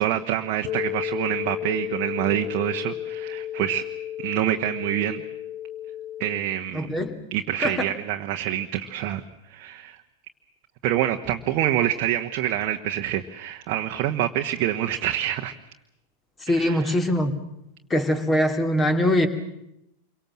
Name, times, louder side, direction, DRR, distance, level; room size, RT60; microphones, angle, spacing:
voice 1, 0.0-3.9 4.2-5.2 6.2-6.9 7.3-9.2 9.5-10.0 10.8-15.5 16.5-17.0, right 12 dB, 40° right, 4 dB, 1.2 m, -26 dB
sound 1, 0.6-6.4, left 11 dB, 55° left, 5.0 m, -33 dB
voice 2, 6.7-7.2 7.6-7.7 16.4-17.4 17.9-19.3, left 1 dB, 15° left, 9 dB, 2.6 m, -22 dB
27.5 x 24.0 x 7.6 m, 0.83 s
figure-of-eight pair, 90°, 0 cm